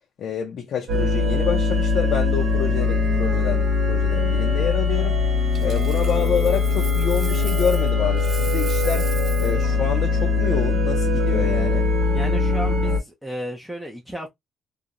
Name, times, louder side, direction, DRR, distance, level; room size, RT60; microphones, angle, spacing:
voice 1, 0.2-5.2 5.6-9.1 9.4-11.9, left 7 dB, 60° left, 0.5 m, -27 dB
sound 1, 0.9-13.0, left 3 dB, 65° right, 0.9 m, -21 dB
Coin (dropping), 5.5-7.9 8.2-9.6 12.5-12.7, right 3 dB, 40° right, 0.9 m, -38 dB
voice 2, 12.1-14.3, right 1 dB, 5° right, 0.4 m, -33 dB
2.4 x 2.0 x 2.8 m
cardioid pair, 140°, 0 cm